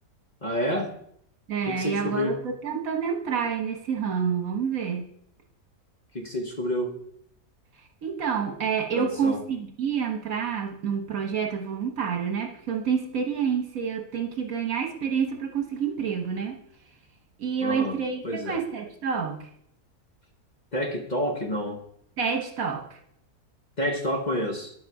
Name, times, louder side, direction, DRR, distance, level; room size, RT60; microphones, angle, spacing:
voice 1, 0.4-0.9 1.7-2.3 6.1-6.9 8.9-9.4 17.6-18.0 18.2-18.6 20.7-21.8 23.8-24.7, equal, 30° left, 2 dB, 1.2 m, -28 dB
voice 2, 1.5-5.1 8.0-16.6 17.4-19.5 22.2-23.0, right 6 dB, 65° right, 4 dB, 1.6 m, -28 dB
10.0 x 7.9 x 4.8 m, 0.68 s
omnidirectional pair, 1.6 m